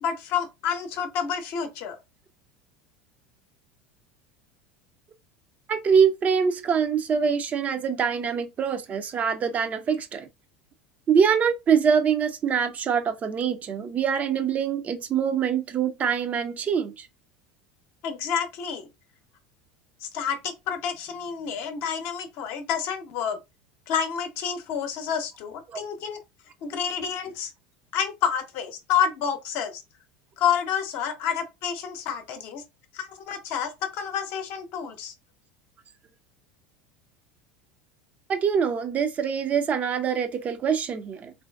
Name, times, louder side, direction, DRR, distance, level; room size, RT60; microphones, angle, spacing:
voice 1, 0.0-2.0 18.0-18.9 20.0-23.4 23.9-26.2 26.6-27.5 27.9-29.8 30.4-32.6 32.9-35.1, left 8 dB, 55° left, 0.7 m, -29 dB
voice 2, 5.7-10.3 11.1-17.1 25.7-25.8 38.3-41.3, right 7 dB, 35° right, 0.5 m, -24 dB
3.0 x 2.5 x 2.3 m
hypercardioid pair, 80°, 5 cm